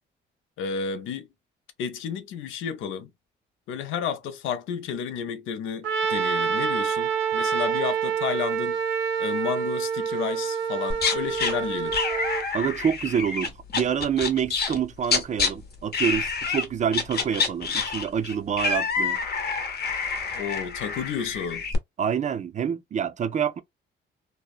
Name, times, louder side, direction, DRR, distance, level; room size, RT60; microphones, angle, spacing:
voice 1, 0.6-1.3 1.8-3.1 3.7-8.8 9.2-12.0 20.3-21.6, left 7 dB, 85° left, 0.5 m, -31 dB
Trumpet, 5.8-12.4, right 7 dB, 80° right, 0.8 m, -27 dB
sound 1, 10.9-11.5 11.9-15.5 15.9-16.6 16.9-21.8, left 5 dB, 55° left, 0.8 m, -27 dB
voice 2, 12.5-19.2 22.0-23.6, right 8 dB, 40° right, 0.4 m, -27 dB
2.7 x 2.0 x 2.3 m
cardioid pair, 90°, 20 cm